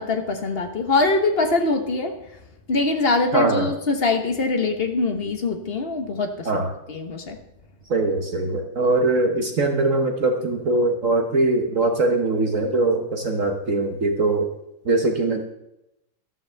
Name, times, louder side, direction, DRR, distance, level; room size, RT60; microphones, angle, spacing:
voice 1, 0.0-2.2 2.7-7.4, left 3 dB, 35° left, 5 dB, 1.1 m, -23 dB
voice 2, 3.3-3.7 6.4-6.7 7.9-14.5 14.8-15.4, right 2 dB, 45° right, 3 dB, 1.2 m, -21 dB
13.0 x 13.0 x 3.4 m, 0.86 s
omnidirectional pair, 2.3 m